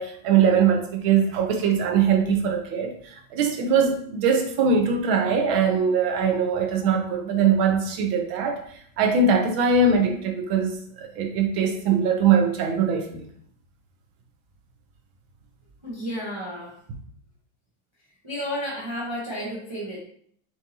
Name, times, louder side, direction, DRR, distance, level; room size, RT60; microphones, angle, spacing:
voice 1, 0.0-8.6 9.0-13.2, right 5 dB, 80° right, 3 dB, 1.6 m, -22 dB
voice 2, 15.8-16.7 18.2-20.0, equal, 30° right, -7 dB, 0.5 m, -32 dB
6.9 x 2.7 x 2.9 m, 0.64 s
omnidirectional pair, 2.2 m